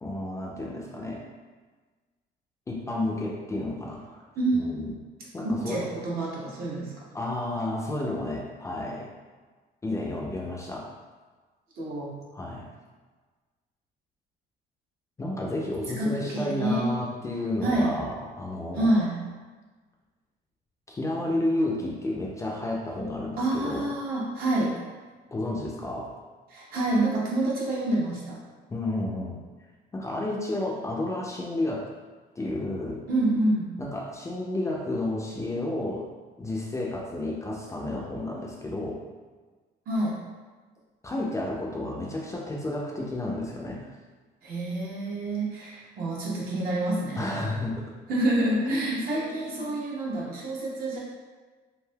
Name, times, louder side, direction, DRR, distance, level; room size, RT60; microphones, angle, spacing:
voice 1, 0.0-1.2 2.7-4.2 4.5-5.0 5.3-5.9 7.1-9.1 9.8-10.9 12.3-12.7 15.2-18.9 20.9-23.9 25.3-26.1 28.7-29.4 29.9-31.9 32.4-33.0 33.8-36.1 36.4-39.0 41.0-43.9 47.2-47.9 48.6-49.0, left 1 dB, 15° left, -2 dB, 0.4 m, -31 dB
voice 2, 5.6-6.9 11.8-12.1 16.0-16.9 17.6-17.9 18.7-19.2 23.4-24.7 26.5-28.4 33.1-33.7 39.9-40.2 44.4-47.3 48.1-51.0, right 1 dB, 65° right, -5 dB, 0.9 m, -27 dB
3.3 x 2.6 x 2.2 m, 1.4 s
cardioid pair, 110°, 17 cm